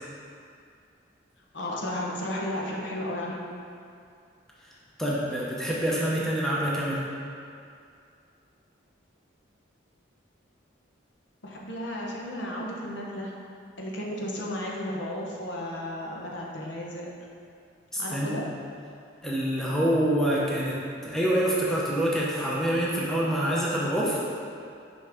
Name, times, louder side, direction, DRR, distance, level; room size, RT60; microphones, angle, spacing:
voice 1, 1.5-3.4 6.2-6.5 11.4-13.3 13.8-17.1 18.0-18.4, left 1 dB, 70° left, -2 dB, 0.9 m, -34 dB
voice 2, 5.0-7.1 17.9-18.4 19.2-24.2, right 1 dB, ahead, -6 dB, 0.7 m, -26 dB
6.2 x 5.4 x 3.5 m, 2.4 s
head